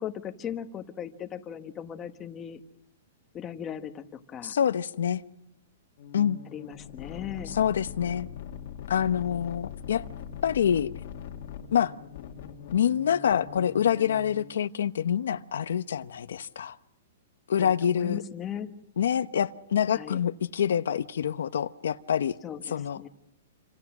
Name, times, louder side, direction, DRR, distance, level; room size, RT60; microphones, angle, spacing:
voice 1, 0.0-2.6 3.3-4.5 6.5-7.5 17.6-18.7 19.9-20.2 22.4-23.1, left 9 dB, 15° left, 6 dB, 1.3 m, -38 dB
voice 2, 4.4-5.2 6.1-6.4 7.5-8.3 8.9-10.0 10.4-10.9 11.7-11.9 12.7-16.8 17.5-18.2 19.0-22.4 22.7-23.1, left 8 dB, 85° left, 11 dB, 1.0 m, -26 dB
sound 1, 6.0-14.6, left 9 dB, 50° left, 1.9 m, -42 dB
28.0 x 26.0 x 6.2 m, 0.81 s
hypercardioid pair, 170°, 0 cm